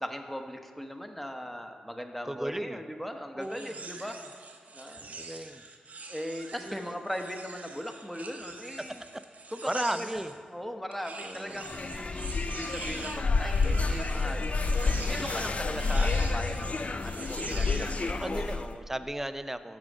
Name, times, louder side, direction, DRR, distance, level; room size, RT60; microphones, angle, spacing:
voice 1, 0.0-4.1 4.7-5.1 6.1-9.0 9.5-14.6 15.1-18.4, equal, 5° left, 5 dB, 0.9 m, -39 dB
voice 2, 2.2-2.8 3.3-4.2 5.1-5.6 6.6-7.0 8.9-9.2 9.6-10.3 11.2-11.7 13.7-14.1 18.1-19.8, right 1 dB, 10° right, 11 dB, 0.4 m, -36 dB
sound 1, 3.4-10.4 10.9-18.2, right 3 dB, 60° right, 0.7 m, -44 dB
sound 2, 11.6-18.7, left 3 dB, 50° left, 0.4 m, -29 dB
6.3 x 6.2 x 5.2 m, 2.3 s
supercardioid pair, 40°, 3 cm